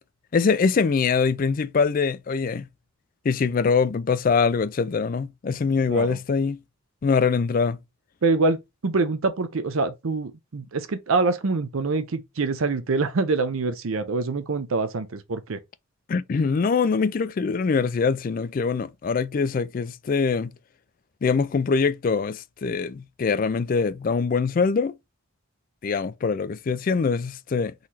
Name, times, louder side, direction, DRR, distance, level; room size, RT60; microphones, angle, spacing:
voice 1, 0.3-2.7 3.2-6.6 7.0-7.8 16.1-20.5 21.2-25.0 25.8-27.7, left 5 dB, 40° left, 0.3 m, -23 dB
voice 2, 8.2-15.6, right 3 dB, 75° right, 0.6 m, -25 dB
4.0 x 3.1 x 4.0 m
head